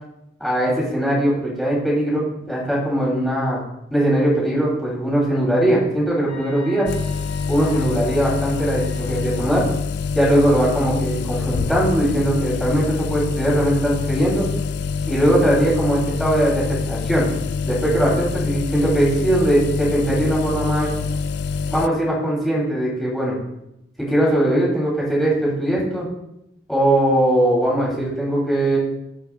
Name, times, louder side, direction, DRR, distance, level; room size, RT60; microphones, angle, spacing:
voice 1, 0.4-3.6 3.9-6.9 7.5-9.6 10.1-14.5 15.1-17.3 17.6-20.9 21.7-23.4 24.0-26.0 26.7-28.8, right 1 dB, ahead, -6 dB, 3.4 m, -20 dB
sound 1, 6.3-9.5, left 4 dB, 40° left, 1.4 m, -41 dB
sound 2, 6.9-21.9, left 5 dB, 65° left, 0.3 m, -26 dB
16.0 x 5.8 x 2.5 m, 0.84 s
head